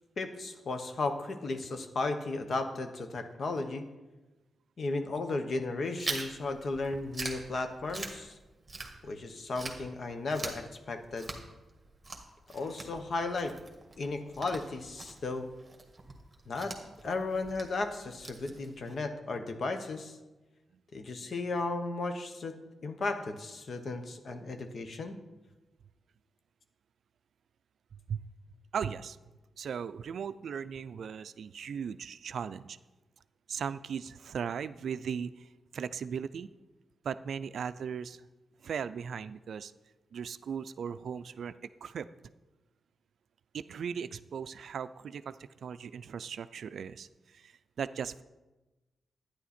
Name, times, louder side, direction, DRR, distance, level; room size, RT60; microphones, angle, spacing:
voice 1, 0.2-3.9 4.8-8.4 9.0-11.3 12.5-13.5 14.0-15.5 16.5-16.8 17.0-20.2 20.9-22.6 22.8-25.2, left 3 dB, 55° left, 7 dB, 1.0 m, -35 dB
Chewing mastication, 6.0-9.2 9.5-19.0, right 3 dB, 25° right, 1.6 m, -43 dB
voice 2, 28.7-29.2 29.6-32.8 33.5-36.5 37.0-38.2 38.6-39.7 40.1-41.5 41.8-42.1 43.5-48.2, right 7 dB, 75° right, 13 dB, 0.3 m, -38 dB
11.0 x 9.7 x 4.3 m, 1.1 s
cardioid pair, 105°, 0 cm